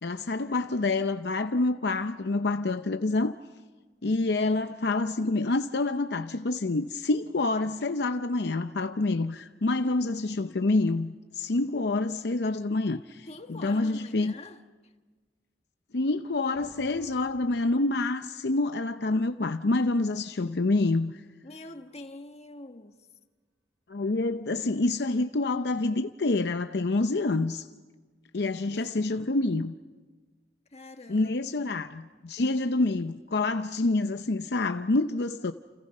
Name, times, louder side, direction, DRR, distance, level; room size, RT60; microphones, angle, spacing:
voice 1, 0.0-3.3 4.0-14.3 15.9-21.2 23.9-27.7 28.3-29.7 31.1-35.5, left 2 dB, 65° left, 0.7 m, -27 dB
voice 2, 13.2-14.9 21.4-23.1 28.5-29.0 30.7-31.9, left 2 dB, 35° left, 1.5 m, -46 dB
sound 1, 16.5-20.3, right 1 dB, 35° right, 3.0 m, -57 dB
29.5 x 29.5 x 5.5 m
head